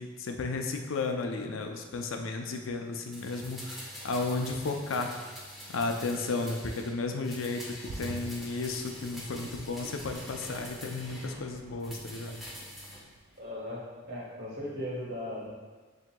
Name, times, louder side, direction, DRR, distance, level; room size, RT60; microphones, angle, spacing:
voice 1, 0.0-5.1 5.7-12.4, left 3 dB, 80° left, 4 dB, 0.5 m, -33 dB
sound 1, 3.1-6.9 7.2-11.4 11.8-13.0 13.3-13.4, equal, ahead, 0.7 m, -45 dB
sound 2, 7.8-13.7 14.0-14.1, right 2 dB, 75° right, 0.4 m, -47 dB
voice 2, 13.4-15.5, left 1 dB, 60° right, -5 dB, 1.3 m, -37 dB
7.3 x 2.8 x 2.2 m, 1.4 s
head